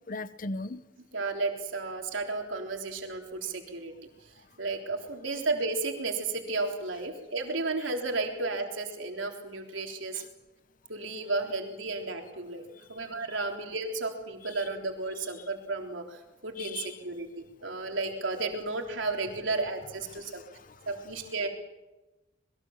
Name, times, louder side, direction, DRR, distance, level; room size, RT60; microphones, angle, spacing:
voice 1, 0.1-0.8 10.1-10.2 16.6-17.0 20.1-20.8, left 3 dB, 45° left, 14 dB, 0.8 m, -38 dB
voice 2, 1.1-3.9 4.6-10.2 10.9-12.6 12.9-17.3 17.6-20.4 20.9-21.5, right 3 dB, 85° right, 3 dB, 3.6 m, -33 dB
27.0 x 21.5 x 7.3 m, 1.1 s
head